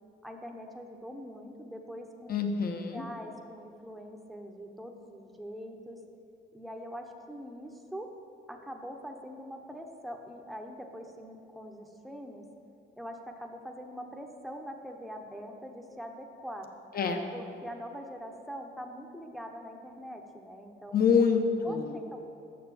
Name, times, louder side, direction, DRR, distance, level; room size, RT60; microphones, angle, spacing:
voice 1, 0.2-2.3 2.9-6.0 6.5-8.1 8.5-12.4 13.0-16.7 17.3-21.0 21.6-22.2, equal, ahead, 2 dB, 0.8 m, -43 dB
voice 2, 2.3-3.0 16.9-17.2 20.9-21.9, left 6 dB, 50° left, 5 dB, 0.9 m, -26 dB
6.8 x 6.5 x 6.9 m, 2.7 s
cardioid pair, 90°, 20 cm